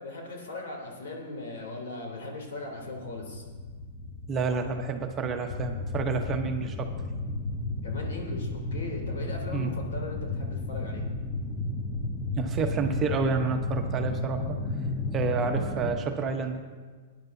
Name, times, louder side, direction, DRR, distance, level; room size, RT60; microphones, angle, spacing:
voice 1, 0.0-3.4 7.8-11.0, left 2 dB, 75° left, 0 dB, 3.1 m, -38 dB
sound 1, 2.8-16.0, left 2 dB, 20° left, 1.1 m, -33 dB
voice 2, 4.3-6.9 9.5-9.7 12.4-14.6 15.1-16.6, right 4 dB, 20° right, 4 dB, 0.9 m, -29 dB
19.0 x 10.5 x 2.7 m, 1.4 s
hypercardioid pair, 145°, 0 cm